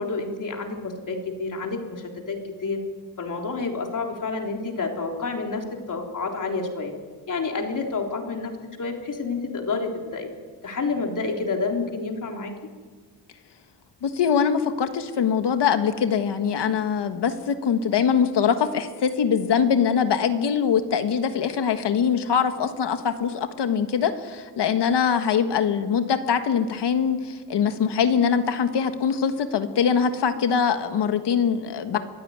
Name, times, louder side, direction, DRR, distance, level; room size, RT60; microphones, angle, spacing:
voice 1, 0.0-2.8 3.2-6.9 7.3-10.3 10.6-12.6, left 4 dB, 50° left, 2 dB, 3.6 m, -29 dB
voice 2, 14.0-32.0, left 7 dB, 80° left, 8 dB, 1.6 m, -23 dB
24.5 x 14.0 x 9.4 m, 1.5 s
cardioid pair, 110°, 41 cm